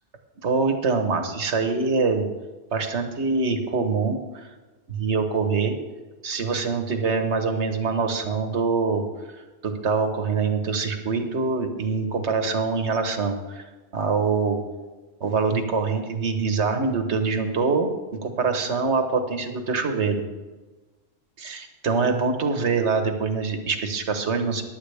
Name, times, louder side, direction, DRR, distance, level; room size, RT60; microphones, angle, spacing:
voice 1, 0.4-2.2 2.7-4.5 4.9-5.8 6.2-9.0 9.6-13.6 13.9-14.6 15.2-17.9 18.2-20.2 21.4-24.6, right 4 dB, 65° right, 6 dB, 1.5 m, -24 dB
15.0 x 11.0 x 3.4 m, 1.2 s
omnidirectional pair, 1.3 m